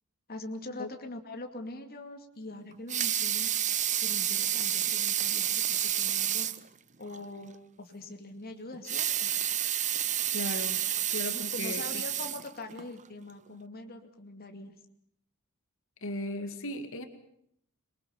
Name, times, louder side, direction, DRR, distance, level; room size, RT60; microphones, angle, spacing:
voice 1, 0.3-3.5 4.0-6.5 7.0-9.3 11.3-14.8, left 2 dB, 45° left, 5 dB, 2.4 m, -43 dB
Water tap faucet / Sink (filling or washing) / Liquid, 2.7-6.7 7.1-7.2 7.5-7.6 8.7-12.9 13.5-13.6, right 10 dB, 35° right, 0.9 m, -30 dB
voice 2, 10.3-10.8 11.1-12.0 16.0-17.1, left 1 dB, 65° left, 7 dB, 2.3 m, -36 dB
26.0 x 22.5 x 7.1 m, 0.70 s
head